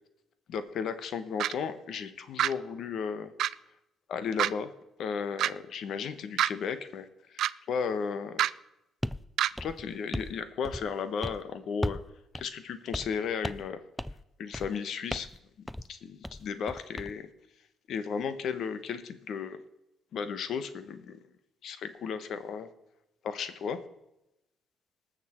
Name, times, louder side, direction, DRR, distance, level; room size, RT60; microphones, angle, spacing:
voice 1, 0.5-3.3 4.1-4.7 5.0-8.4 9.6-12.0 12.3-13.8 14.4-15.3 15.9-17.3 17.9-19.6 20.1-21.2 21.6-22.7 23.2-23.8, left 6 dB, 65° left, 12 dB, 1.1 m, -34 dB
sound 1, 1.4-1.5 2.4-2.5 3.4-3.5 4.4-4.5 5.4-5.5 6.4-6.5 7.4-7.5 8.4-8.5 9.4-9.5, right 11 dB, 75° right, 0.3 m, -26 dB
sound 2, 9.0-9.2 9.6-10.4 10.6-11.0 11.2-11.4 11.8-12.1 12.3-12.5 12.9-13.2 13.4-13.7 14.0-14.2 14.5-14.8 15.1-15.4 15.7-15.9 16.2-17.1, left 1 dB, 5° left, 0.4 m, -36 dB
19.5 x 6.5 x 4.4 m, 0.88 s
cardioid pair, 100°, 0 cm